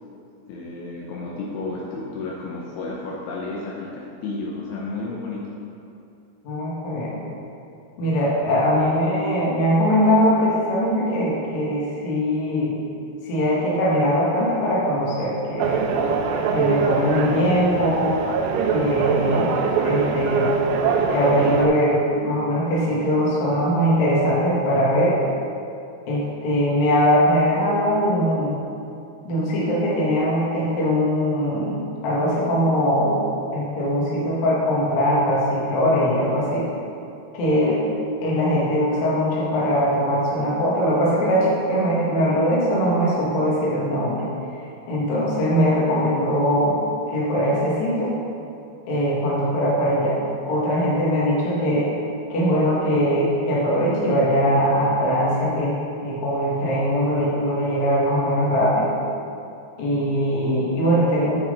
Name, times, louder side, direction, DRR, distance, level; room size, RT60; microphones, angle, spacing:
voice 1, 0.5-5.5, left 3 dB, 80° left, -3 dB, 2.7 m, -32 dB
voice 2, 6.4-7.2 8.0-12.8 13.2-15.8 16.5-18.1 18.7-20.5 21.1-25.2 26.1-28.6 29.2-36.7 37.3-37.8 38.2-44.3 44.9-46.8 47.1-48.1 48.9-50.2 50.4-51.9 52.3-58.9 59.8-61.4, equal, 55° left, -6 dB, 2.4 m, -21 dB
sound 1, 15.6-21.7, right 6 dB, 80° right, 2.6 m, -23 dB
7.4 x 7.2 x 3.9 m, 2.6 s
omnidirectional pair, 5.0 m